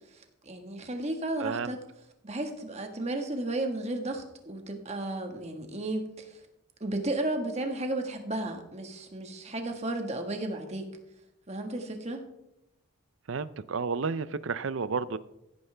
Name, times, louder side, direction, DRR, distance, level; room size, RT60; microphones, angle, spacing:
voice 1, 0.1-1.8 2.2-6.4 6.8-10.9 11.5-12.2, right 2 dB, 30° right, 4 dB, 1.6 m, -33 dB
voice 2, 1.4-1.8 13.3-15.2, right 5 dB, 65° right, 16 dB, 0.5 m, -31 dB
16.0 x 9.5 x 3.4 m, 0.85 s
head